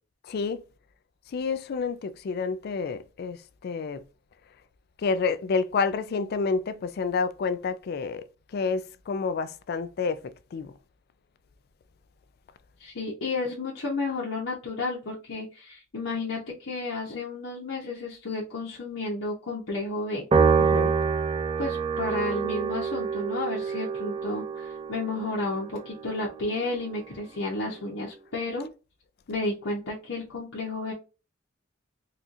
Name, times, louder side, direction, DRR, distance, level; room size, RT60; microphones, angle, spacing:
voice 1, 0.3-0.6 1.3-3.4 3.6-4.0 5.0-8.2 8.5-10.7 20.6-20.9, left 4 dB, 55° left, 0.3 m, -29 dB
voice 2, 12.8-20.2 21.6-28.7 29.3-30.9, left 2 dB, 90° left, 0.9 m, -32 dB
Piano, 20.3-26.9, right 5 dB, 30° right, 0.4 m, -27 dB
4.3 x 2.4 x 2.6 m
head